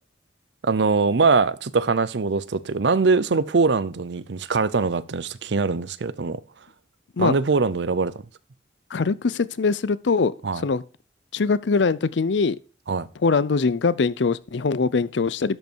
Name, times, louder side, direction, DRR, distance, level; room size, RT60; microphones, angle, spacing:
voice 1, 0.6-6.4 7.2-8.1 10.4-10.6 12.9-13.1, right 4 dB, 80° right, 0.6 m, -22 dB
voice 2, 8.9-10.8 11.3-12.6 13.2-15.6, left 4 dB, 85° left, 0.5 m, -22 dB
12.0 x 5.4 x 4.5 m
head